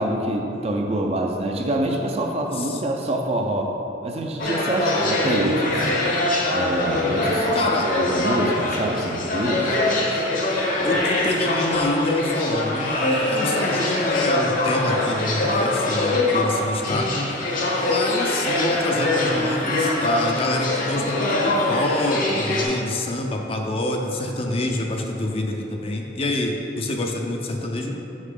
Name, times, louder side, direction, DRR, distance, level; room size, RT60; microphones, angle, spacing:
voice 1, 0.0-3.7 4.0-5.9 6.5-7.5 7.9-9.8, right 1 dB, 35° right, 2 dB, 0.5 m, -25 dB
voice 2, 2.5-2.8 7.5-7.9 10.8-17.3 17.9-28.0, left 1 dB, 30° left, 2 dB, 0.5 m, -26 dB
sound 1, 4.4-22.6, left 2 dB, 45° left, 0.9 m, -23 dB
6.4 x 5.8 x 3.8 m, 3.0 s
head